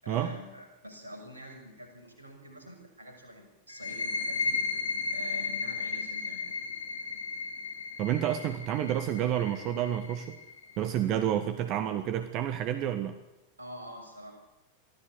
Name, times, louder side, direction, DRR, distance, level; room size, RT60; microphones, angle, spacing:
voice 1, 0.0-4.6 5.1-6.4 13.6-14.4, equal, 80° right, 4 dB, 6.3 m, -46 dB
sound 1, 3.7-11.1, left 4 dB, 75° left, 3.3 m, -35 dB
voice 2, 8.0-10.4 10.8-13.2, right 11 dB, 40° right, 9 dB, 1.5 m, -29 dB
24.0 x 15.0 x 8.4 m, 1.0 s
figure-of-eight pair, 90°, 0 cm